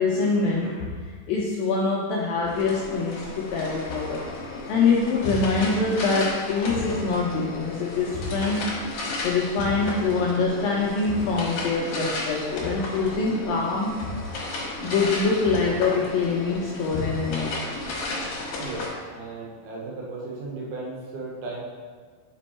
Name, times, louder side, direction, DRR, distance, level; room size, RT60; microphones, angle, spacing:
voice 1, 0.0-4.3 4.7-8.7 9.2-14.1 14.8-17.8 18.1-18.8, left 4 dB, 85° left, -3 dB, 2.1 m, -25 dB
sound 1, 2.5-18.9, left 2 dB, 60° left, 1.9 m, -34 dB
voice 2, 18.6-21.6, right 3 dB, 75° right, -3 dB, 3.0 m, -35 dB
6.1 x 5.2 x 4.2 m, 1.5 s
omnidirectional pair, 4.8 m